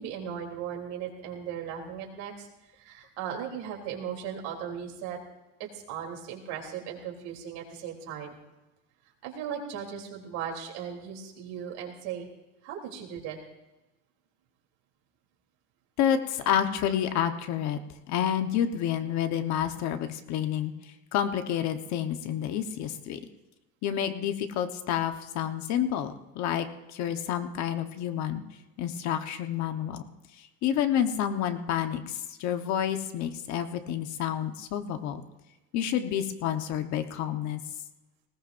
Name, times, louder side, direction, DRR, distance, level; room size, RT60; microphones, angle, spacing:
voice 1, 0.0-2.5 2.8-5.2 5.6-8.3 9.2-12.3 12.6-13.4, right 8 dB, 75° right, 0 dB, 3.4 m, -37 dB
voice 2, 16.0-17.8 18.1-20.7 21.1-23.2 23.8-28.4 28.8-30.0 30.4-35.2 35.7-37.6, left 9 dB, 50° left, 7 dB, 1.2 m, -29 dB
19.5 x 18.0 x 2.6 m, 1.0 s
cardioid pair, 170°, 35 cm